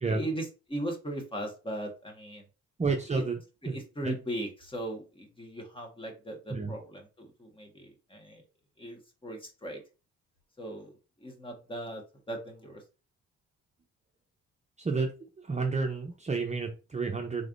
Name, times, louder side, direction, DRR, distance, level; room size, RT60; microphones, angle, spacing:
voice 1, 0.0-2.4 3.0-3.2 3.6-8.4 8.8-9.8 10.6-10.9 11.2-12.8, right 1 dB, 15° left, 2 dB, 1.5 m, -38 dB
voice 2, 2.8-3.4 3.7-4.1 6.5-6.7 14.8-15.1 15.5-17.5, right 4 dB, 25° right, 2 dB, 0.7 m, -30 dB
4.2 x 3.3 x 2.6 m, 0.32 s
cardioid pair, 90°, 30 cm